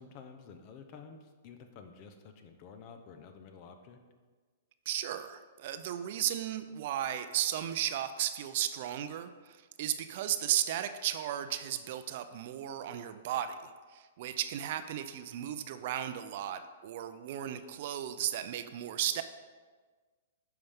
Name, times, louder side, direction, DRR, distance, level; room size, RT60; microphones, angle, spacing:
voice 1, 0.0-4.0, left 5 dB, 40° left, 7 dB, 0.8 m, -51 dB
voice 2, 4.9-9.3 9.8-19.2, right 11 dB, 55° right, 10 dB, 0.5 m, -35 dB
9.4 x 5.7 x 3.6 m, 1.4 s
hypercardioid pair, 140°, 0 cm